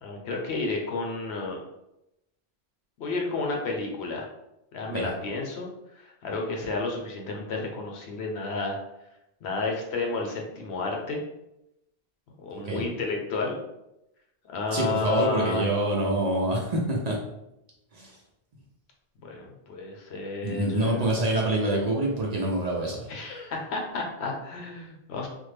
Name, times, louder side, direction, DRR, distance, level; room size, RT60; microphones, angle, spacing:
voice 1, 0.0-1.6 3.0-4.3 4.7-5.7 6.0-8.8 9.4-11.2 12.4-13.6 14.5-15.6 19.2-21.1 23.1-25.3, left 3 dB, 85° left, 1 dB, 1.0 m, -31 dB
voice 2, 14.7-17.1 17.9-18.1 20.4-23.1, right 1 dB, 50° right, -2 dB, 0.6 m, -26 dB
3.5 x 2.0 x 3.2 m, 0.87 s
omnidirectional pair, 1.1 m